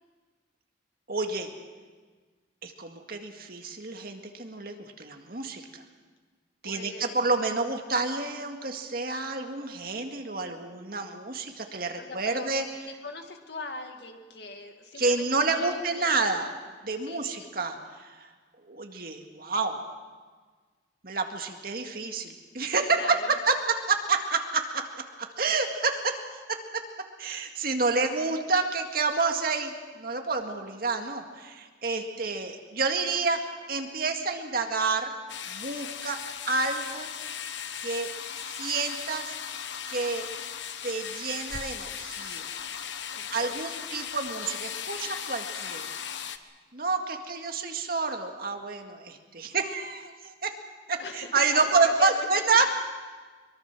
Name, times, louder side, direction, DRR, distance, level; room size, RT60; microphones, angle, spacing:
voice 1, 1.1-1.5 2.6-5.8 6.6-12.7 15.0-16.5 16.8-18.3 18.7-19.8 21.0-24.9 25.4-26.2 26.5-26.8 27.2-35.1 35.5-36.2 36.5-37.1 37.8-38.1 38.6-39.2 39.9-40.3 40.8-42.5 43.3-45.9 46.7-50.5 50.9-52.7, right 4 dB, 55° right, 4 dB, 2.0 m, -29 dB
voice 2, 6.6-7.2 12.0-16.3 17.0-17.5 22.9-23.4 43.1-43.7 51.0-52.3 52.5-52.7, left 3 dB, 65° left, 5 dB, 2.1 m, -41 dB
sound 1, 35.3-46.4, left 8 dB, 85° left, 1.0 m, -37 dB
23.5 x 23.0 x 6.1 m, 1.4 s
head